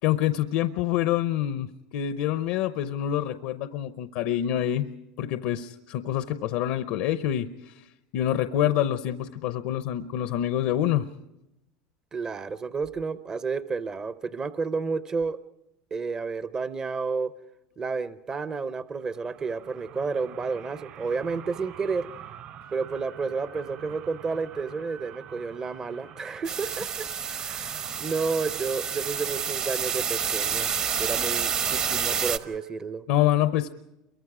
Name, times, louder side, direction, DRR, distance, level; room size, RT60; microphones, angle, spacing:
voice 1, 0.0-4.9 5.2-7.8 8.1-11.1 33.1-33.7, left 12 dB, 70° left, 11 dB, 0.7 m, -26 dB
voice 2, 12.1-15.4 15.9-17.3 17.8-22.1 22.7-30.7 31.0-33.0, right 4 dB, 30° right, 13 dB, 0.7 m, -31 dB
sound 1, 18.9-32.6, right 8 dB, 65° right, 3.4 m, -46 dB
sound 2, 26.4-32.4, right 7 dB, 45° right, 1.1 m, -29 dB
28.5 x 23.5 x 4.9 m, 0.91 s
supercardioid pair, 105°, 2 cm